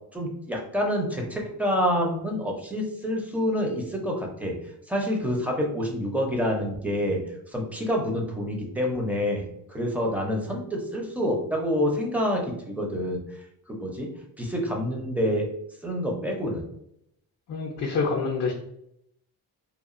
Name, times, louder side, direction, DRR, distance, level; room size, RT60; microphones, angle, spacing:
voice 1, 0.1-4.5 4.9-7.2 7.5-9.4 9.7-13.2 13.7-14.1 14.4-15.5 15.8-16.6, equal, 5° right, -1 dB, 0.6 m, -27 dB
voice 2, 17.5-18.5, left 4 dB, 45° left, -1 dB, 0.5 m, -26 dB
2.9 x 2.3 x 2.5 m, 0.76 s
cardioid pair, 110°, 38 cm